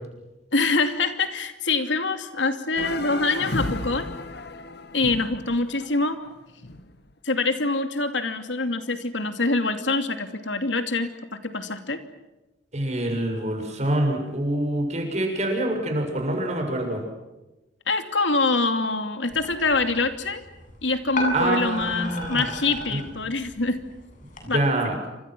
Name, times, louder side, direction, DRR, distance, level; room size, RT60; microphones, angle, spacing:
voice 1, 0.5-4.1 4.9-6.2 7.2-12.0 17.9-20.4 20.8-23.8 24.5-24.6, left 3 dB, 80° left, 8 dB, 2.7 m, -25 dB
sound 1, 2.8-7.0, left 2 dB, 65° left, 2.0 m, -33 dB
voice 2, 12.7-17.0 21.3-22.4 22.9-23.0 24.4-24.9, right 1 dB, 40° right, 3 dB, 6.9 m, -26 dB
sound 2, 19.3-24.5, left 1 dB, 45° left, 7.7 m, -35 dB
29.0 x 26.0 x 6.2 m, 1.0 s
head